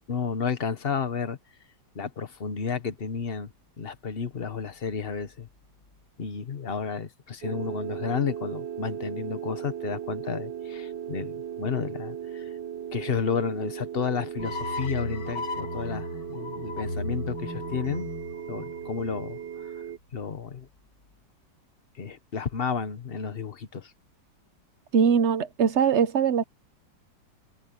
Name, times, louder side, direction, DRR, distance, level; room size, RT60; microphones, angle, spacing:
voice 1, 0.1-1.4 1.9-3.5 3.8-5.5 6.2-12.5 12.9-18.1 18.5-19.4 20.1-20.7 22.0-23.9, left 6 dB, 35° left, 1.2 m, -32 dB
sound 1, 7.4-20.0, right 9 dB, 85° right, 1.5 m, -37 dB
sound 2, 14.4-19.6, left 3 dB, 90° left, 7.8 m, -35 dB
voice 2, 24.9-26.4, right 7 dB, 55° right, 0.9 m, -21 dB
open air
omnidirectional pair, 1.9 m